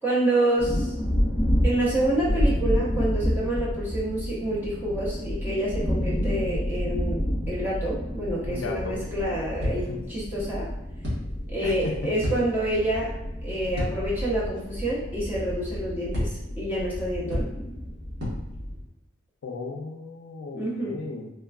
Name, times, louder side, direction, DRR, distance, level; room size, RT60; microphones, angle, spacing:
voice 1, 0.0-0.9 1.6-7.2 7.5-10.7 11.5-13.1 13.4-17.4 20.5-21.0, right 1 dB, 10° right, -8 dB, 0.8 m, -27 dB
sound 1, 0.6-18.8, equal, 30° left, 0.7 m, -30 dB
voice 2, 8.4-9.0 9.7-10.0 11.6-12.4 19.4-21.3, left 3 dB, 75° left, 2 dB, 0.4 m, -36 dB
sound 2, 9.6-10.1 11.0-11.5 12.2-12.9 13.7-14.3 14.5-14.6 16.1-16.6 17.3-17.8 18.2-18.7, left 1 dB, 60° right, 1.2 m, -32 dB
3.2 x 2.2 x 2.3 m, 0.95 s
head